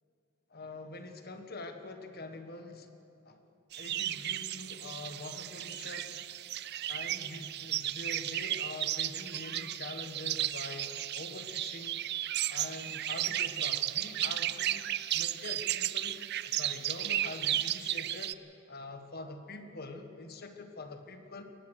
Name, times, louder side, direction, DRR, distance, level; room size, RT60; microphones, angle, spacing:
voice 1, 0.5-2.9 3.2-3.4 3.8-6.2 6.9-12.0 12.5-14.8 15.1-18.4 18.7-21.4, left 2 dB, 45° left, 7 dB, 1.4 m, -45 dB
sound 1, 3.7-18.3, right 13 dB, 50° right, 0.4 m, -34 dB
22.5 x 18.5 x 6.4 m, 2.9 s
head